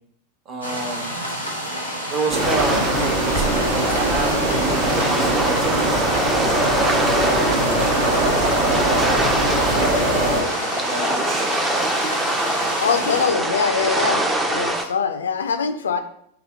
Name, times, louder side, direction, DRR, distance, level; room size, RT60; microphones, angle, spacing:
voice 1, 0.5-1.2 2.1-6.3 7.3-7.9 8.2-9.3 9.6-11.5, right 3 dB, 30° right, 2 dB, 0.9 m, -30 dB
sound 1, 0.6-13.3, equal, 85° right, 1.1 m, -30 dB
sound 2, 2.3-10.4, right 1 dB, 55° right, 1.0 m, -21 dB
sound 3, 2.4-14.8, right 1 dB, 10° right, 0.5 m, -24 dB
voice 2, 12.8-16.0, left 5 dB, 70° left, 9 dB, 0.4 m, -23 dB
4.0 x 2.8 x 4.8 m, 0.68 s
figure-of-eight pair, 90°, 0 cm